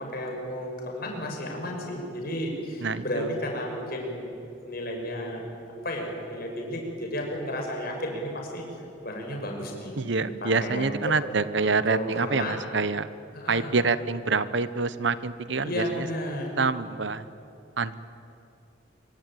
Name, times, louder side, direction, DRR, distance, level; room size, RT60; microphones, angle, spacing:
voice 1, 0.1-4.3 4.6-5.4 5.8-8.6 9.0-11.1 11.6-12.7 13.3-13.7 15.6-16.5, equal, 50° left, 1 dB, 6.7 m, -33 dB
voice 2, 2.8-3.3 10.0-13.1 13.5-16.1 16.6-17.3 17.8-17.9, right 4 dB, 60° right, 14 dB, 0.9 m, -26 dB
26.0 x 24.5 x 9.3 m, 2.7 s
head